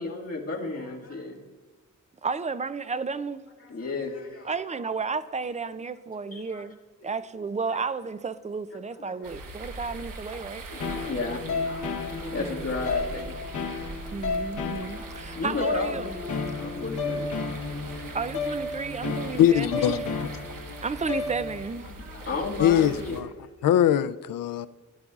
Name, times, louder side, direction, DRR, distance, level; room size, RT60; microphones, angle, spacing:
voice 1, 0.0-1.4 3.6-4.5 6.3-6.6 7.0-7.1 7.7-7.8 8.9-9.3 10.8-14.3 15.3-18.1 21.8-23.7, left 3 dB, 45° left, 2.0 m, -35 dB
voice 2, 2.2-3.4 4.5-6.7 7.0-10.6 12.4-12.7 14.1-16.2 18.1-20.0 20.8-21.8, right 4 dB, 25° right, 0.3 m, -32 dB
sound 1, 9.2-23.2, right 2 dB, 75° right, 1.2 m, -41 dB
sound 2, 10.8-21.8, left 4 dB, 65° left, 1.1 m, -33 dB
voice 3, 19.4-20.3 22.6-23.3 23.6-24.7, left 10 dB, 80° left, 0.5 m, -22 dB
16.0 x 11.0 x 2.4 m
wide cardioid pair, 140°, 33 cm